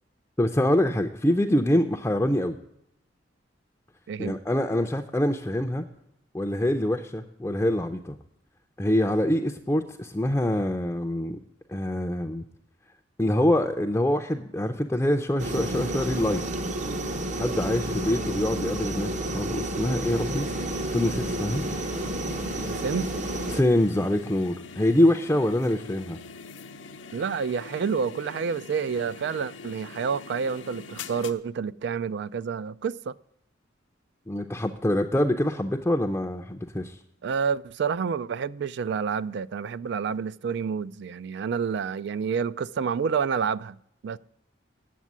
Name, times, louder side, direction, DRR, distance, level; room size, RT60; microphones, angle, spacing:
voice 1, 0.4-2.6 4.2-5.8 6.3-8.2 8.8-11.4 11.7-12.4 13.2-16.4 17.4-20.5 20.9-21.6 23.5-26.2 34.3-37.0, left 1 dB, 10° left, 0.5 m, -25 dB
voice 2, 4.1-4.4 22.6-23.1 27.1-33.1 37.2-43.8 44.0-44.2, right 6 dB, 65° right, 0.3 m, -29 dB
sound 1, 15.4-23.6, right 1 dB, 40° right, 0.7 m, -30 dB
sound 2, 20.0-31.3, left 4 dB, 80° left, 0.7 m, -43 dB
9.4 x 7.3 x 7.3 m
head